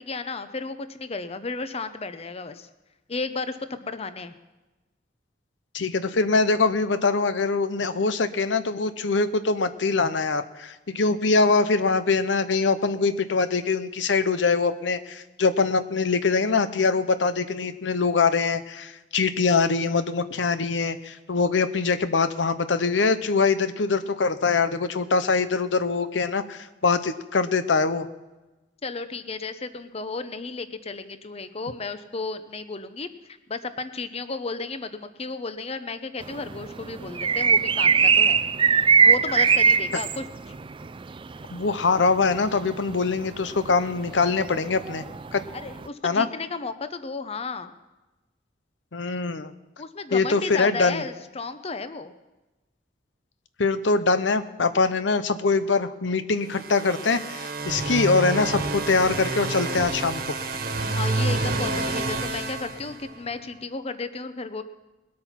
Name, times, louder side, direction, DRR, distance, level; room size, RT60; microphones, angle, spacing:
voice 1, 0.0-2.7 3.1-4.3 28.8-38.4 39.0-40.2 45.5-47.7 49.8-52.1 60.9-64.6, left 4 dB, 35° left, 11 dB, 0.8 m, -33 dB
voice 2, 5.7-28.1 41.5-45.0 45.3-45.4 46.0-46.3 48.9-49.5 50.1-51.0 53.6-60.4, left 4 dB, 85° left, 12 dB, 0.8 m, -23 dB
sound 1, 36.2-45.9, right 6 dB, 30° right, 0.4 m, -22 dB
sound 2, 56.5-63.4, right 2 dB, 55° right, 1.5 m, -29 dB
21.0 x 8.6 x 5.8 m, 1.1 s
head